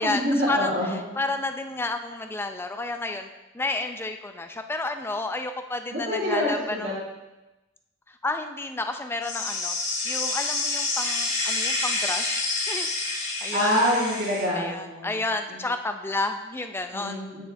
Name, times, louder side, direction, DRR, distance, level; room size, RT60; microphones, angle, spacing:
voice 1, 0.0-1.0 5.9-6.9 13.5-15.2 15.5-15.6 16.9-17.4, equal, 70° right, -8 dB, 2.3 m, -26 dB
voice 2, 1.2-3.3 3.5-7.0 8.1-9.8 10.0-13.1 13.4-13.8 14.5-17.2, left 2 dB, 10° left, 6 dB, 0.4 m, -31 dB
sound 1, 9.2-14.4, left 3 dB, 60° left, 2.1 m, -28 dB
9.5 x 6.3 x 2.6 m, 1.0 s
head